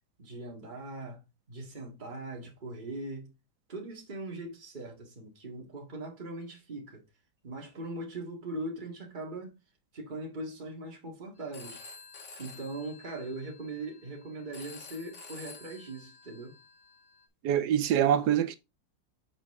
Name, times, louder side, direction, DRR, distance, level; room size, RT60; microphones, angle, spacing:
voice 1, 0.2-1.2 1.5-3.3 3.7-7.0 7.4-9.6 9.9-11.8 12.4-16.6, right 2 dB, 30° right, 2.0 m, -40 dB
Telephone, 11.4-17.2, left 4 dB, 85° left, 1.9 m, -50 dB
voice 2, 17.4-18.5, right 10 dB, 75° right, 1.3 m, -25 dB
7.2 x 5.2 x 3.7 m
omnidirectional pair, 1.8 m